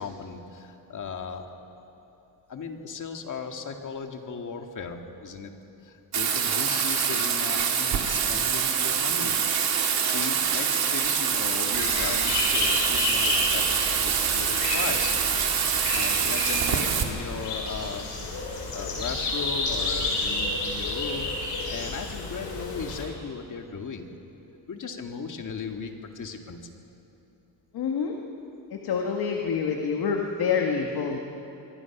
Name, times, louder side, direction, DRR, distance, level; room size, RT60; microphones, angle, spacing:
voice 1, 0.0-1.5 2.5-5.5 5.8-9.4 10.0-15.6 15.9-18.1 18.7-24.1 24.7-26.7, left 5 dB, 50° left, 4 dB, 2.2 m, -37 dB
Bathtub (filling or washing), 6.1-17.0, right 7 dB, 60° right, 2.6 m, -25 dB
sound 1, 11.7-23.0, left 2 dB, 85° left, 6.2 m, -30 dB
voice 2, 27.7-28.2 28.7-31.2, left 6 dB, 70° left, 1 dB, 1.9 m, -27 dB
26.0 x 22.5 x 6.1 m, 2.9 s
cardioid pair, 120°, 40 cm